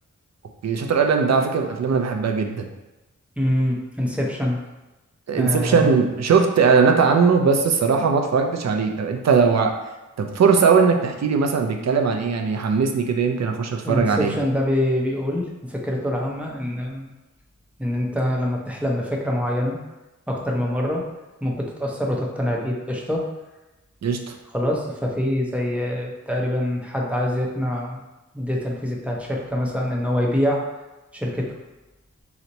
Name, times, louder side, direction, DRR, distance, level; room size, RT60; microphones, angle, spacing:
voice 1, 0.6-2.7 5.3-9.7 10.2-14.3 24.0-24.4, right 5 dB, 60° right, 4 dB, 0.5 m, -19 dB
voice 2, 3.4-4.6 5.4-5.9 13.8-17.1 17.8-19.8 20.3-21.1 21.4-23.3 24.5-28.0 28.3-30.7 31.1-31.5, left 1 dB, 5° right, -2 dB, 0.6 m, -25 dB
2.9 x 2.1 x 3.9 m, 1.1 s
wide cardioid pair, 65°, 30 cm